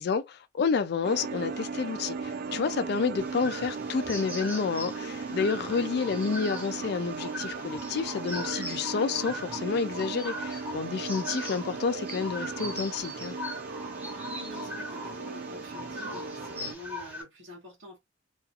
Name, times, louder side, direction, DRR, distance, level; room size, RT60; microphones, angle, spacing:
voice 1, 0.0-13.4, left 5 dB, 55° left, 0.3 m, -30 dB
sound 1, 1.0-16.7, right 4 dB, 50° right, 0.3 m, -37 dB
sound 2, 3.2-17.2, left 1 dB, 5° right, 0.7 m, -40 dB
voice 2, 5.5-5.9 14.0-18.0, left 1 dB, 70° right, 0.9 m, -46 dB
2.4 x 2.4 x 2.7 m
head